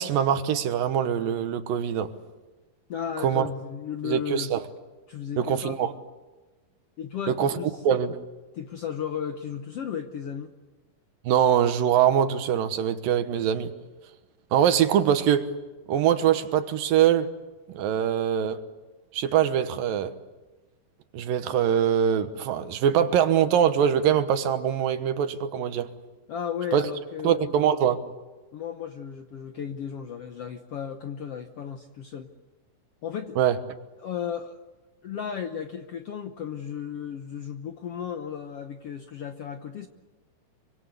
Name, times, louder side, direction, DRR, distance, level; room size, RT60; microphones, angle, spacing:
voice 1, 0.0-2.1 3.2-3.5 4.0-4.6 5.4-5.9 7.3-7.6 7.8-8.2 11.3-13.7 14.5-15.5 15.9-17.3 17.7-18.6 19.1-20.1 21.1-25.9 26.7-26.8 27.2-28.0 33.4-33.6, right 9 dB, 80° right, 10 dB, 2.9 m, -23 dB
voice 2, 2.9-4.5 5.1-5.8 7.0-7.8 8.5-10.5 26.3-27.5 28.5-32.3 33.0-33.4 34.0-34.6 35.0-39.9, left 8 dB, 70° left, 6 dB, 1.5 m, -34 dB
25.5 x 25.0 x 8.2 m, 1.2 s
omnidirectional pair, 4.1 m